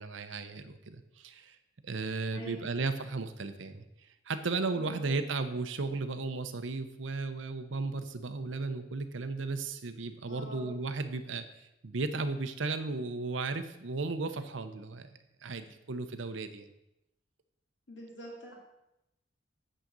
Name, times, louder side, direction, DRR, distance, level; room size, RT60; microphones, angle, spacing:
voice 1, 0.0-1.6 1.8-3.8 4.3-11.5 11.8-15.1 15.4-16.7, right 3 dB, 75° right, 9 dB, 0.8 m, -35 dB
voice 2, 2.3-2.7 4.7-5.2 10.2-10.8 17.9-18.5, equal, 70° left, -3 dB, 2.2 m, -45 dB
9.0 x 3.8 x 6.7 m, 0.88 s
head